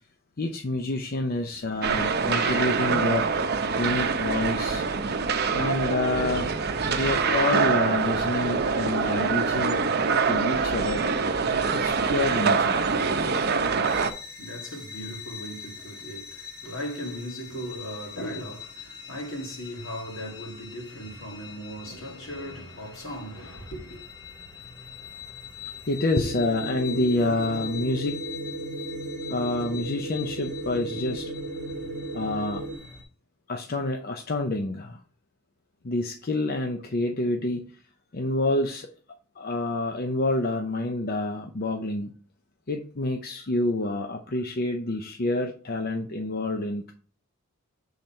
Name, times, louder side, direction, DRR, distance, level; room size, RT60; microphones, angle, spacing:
voice 1, 0.4-4.9 5.5-11.1 11.7-12.9 25.9-28.2 29.3-31.3 32.1-32.6 33.5-35.0 35.8-37.8 38.1-38.9 39.4-42.1 42.7-46.9, left 2 dB, 45° left, 0.7 m, -28 dB
sound 1, 1.8-14.1, right 5 dB, 50° right, 0.7 m, -25 dB
sound 2, 13.8-33.0, left 7 dB, 20° left, 1.8 m, -43 dB
voice 2, 14.4-24.0, equal, 70° left, 2.1 m, -38 dB
sound 3, 26.2-32.8, right 2 dB, 85° right, 0.8 m, -35 dB
7.2 x 3.9 x 4.4 m
head